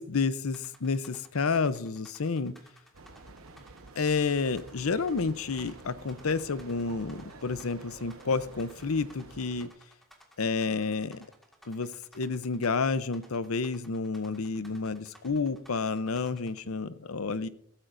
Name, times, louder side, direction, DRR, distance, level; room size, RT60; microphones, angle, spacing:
voice 1, 0.0-2.5 4.0-9.7 10.4-11.3 11.7-17.5, left 4 dB, 85° left, 14 dB, 0.7 m, -30 dB
sound 1, 0.5-16.6, equal, ahead, 1.8 m, -57 dB
sound 2, 2.9-9.7, right 3 dB, 80° right, 1.1 m, -49 dB
15.5 x 13.5 x 2.6 m, 0.63 s
head